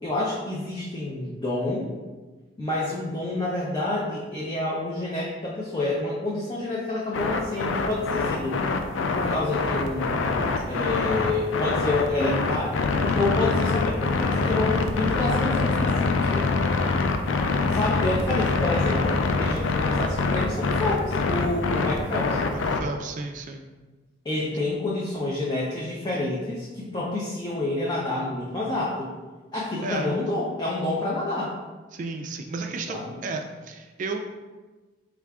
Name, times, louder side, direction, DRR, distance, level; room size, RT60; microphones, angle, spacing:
voice 1, 0.0-1.9 2.6-8.6 9.1-10.3 10.7-16.4 17.7-22.4 24.2-29.1 29.5-31.5 32.9-33.2, left 2 dB, 25° left, -6 dB, 0.5 m, -28 dB
sound 1, 7.1-22.8, left 4 dB, 90° left, 0.4 m, -24 dB
voice 2, 22.5-23.6 29.8-30.1 31.9-34.2, right 3 dB, 40° right, 4 dB, 0.3 m, -33 dB
4.5 x 2.4 x 3.5 m, 1.3 s
head